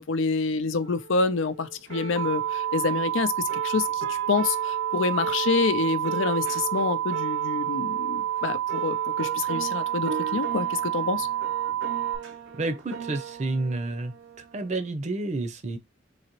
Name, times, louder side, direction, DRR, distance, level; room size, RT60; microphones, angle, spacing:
voice 1, 0.0-3.3 3.6-11.3, left 4 dB, 90° left, 0.5 m, -27 dB
sound 1, 0.8-14.9, right 4 dB, 85° right, 0.8 m, -39 dB
sound 2, 2.2-12.2, right 12 dB, 20° left, 0.6 m, -29 dB
voice 2, 12.6-15.8, right 2 dB, 40° right, 0.6 m, -30 dB
4.0 x 2.9 x 3.0 m
head